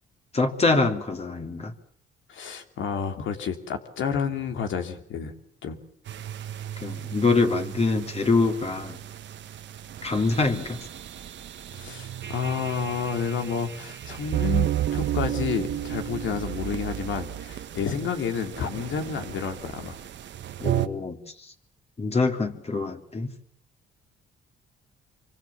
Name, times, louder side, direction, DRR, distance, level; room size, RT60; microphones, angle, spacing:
voice 1, 0.3-1.7 6.8-9.0 10.0-10.8 20.6-21.2 22.0-23.3, left 3 dB, 30° left, 5 dB, 3.3 m, -24 dB
voice 2, 2.3-5.3 5.6-5.8 11.7-20.0, left 7 dB, 75° left, 6 dB, 3.1 m, -30 dB
sound 1, 6.1-20.9, right 12 dB, 65° right, 1.5 m, -33 dB
25.5 x 24.5 x 7.2 m, 0.64 s
cardioid pair, 90°, 20 cm